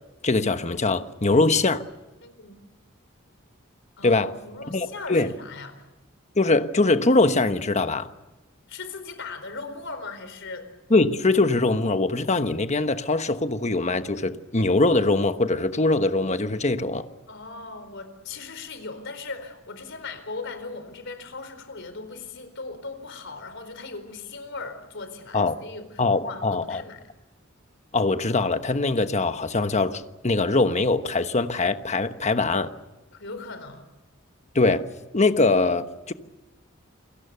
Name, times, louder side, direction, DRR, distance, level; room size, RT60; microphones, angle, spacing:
voice 1, 0.2-1.8 4.0-4.3 4.7-5.3 6.4-8.1 10.9-17.1 25.3-25.6 26.0-26.8 27.9-32.7 34.5-34.9 35.1-36.1, left 3 dB, 35° left, 1.2 m, -22 dB
voice 2, 2.2-2.6 4.0-5.7 8.7-10.7 17.3-27.0 33.1-33.9, left 3 dB, 60° left, 4.4 m, -38 dB
29.0 x 22.5 x 6.9 m
head